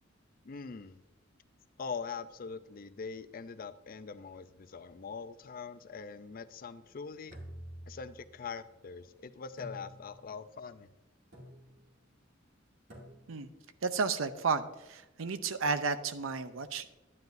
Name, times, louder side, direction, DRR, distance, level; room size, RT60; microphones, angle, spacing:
voice 1, 0.4-1.0 1.8-7.4 7.9-10.9, left 5 dB, 45° left, 13 dB, 0.5 m, -43 dB
sound 1, 7.3-8.5 9.6-10.4 11.3-11.9 12.9-13.6, equal, 60° right, 2.5 m, -49 dB
voice 2, 13.8-16.9, right 4 dB, 90° right, 11 dB, 0.6 m, -32 dB
10.5 x 9.4 x 2.6 m, 1.0 s
head